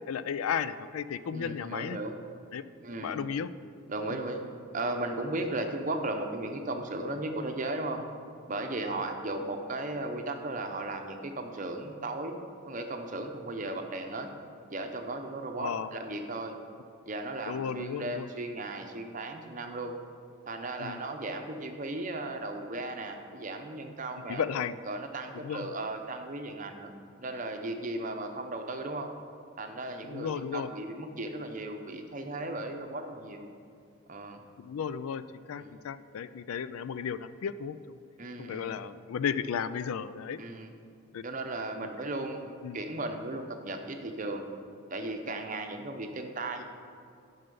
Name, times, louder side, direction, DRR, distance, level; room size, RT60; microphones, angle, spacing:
voice 1, 0.1-2.0 2.5-2.6 3.0-3.5 15.6-15.9 17.5-18.3 20.8-21.0 24.3-24.8 25.4-25.7 30.0-30.7 34.6-35.2 35.5-38.0 38.4-40.4 41.1-41.2 41.8-41.9 42.6-42.8, left 7 dB, 80° left, 15 dB, 0.4 m, -34 dB
voice 2, 1.3-2.1 2.8-3.2 3.9-4.4 4.7-8.0 8.5-12.4 12.7-14.3 14.7-16.6 17.1-19.9 20.5-24.4 24.9-26.9 27.2-29.1 29.6-33.5 34.1-34.4 35.5-35.7 38.2-38.7 40.4-40.7 41.2-44.5 44.9-46.6, right 2 dB, 35° right, 5 dB, 0.7 m, -36 dB
11.0 x 5.5 x 5.4 m, 2.4 s
head